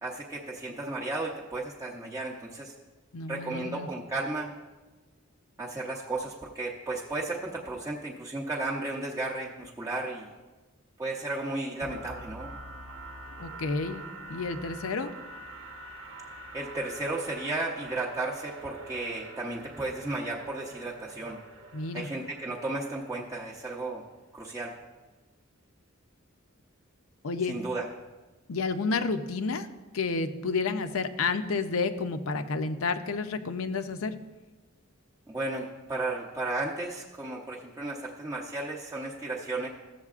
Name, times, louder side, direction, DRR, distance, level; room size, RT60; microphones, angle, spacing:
voice 1, 0.0-2.7 3.3-4.5 5.6-10.3 11.0-12.6 16.5-21.4 21.9-24.0 24.3-24.7 27.5-27.8 35.3-39.7, right 2 dB, 15° right, -5 dB, 0.7 m, -34 dB
voice 2, 3.1-3.9 13.4-14.0 14.3-15.1 21.7-22.1 27.2-27.6 28.5-29.7 29.9-34.2, left 4 dB, 75° left, 9 dB, 0.6 m, -30 dB
sound 1, 11.8-23.6, right 2 dB, 70° right, 0.9 m, -45 dB
14.5 x 7.4 x 2.4 m, 1.2 s
head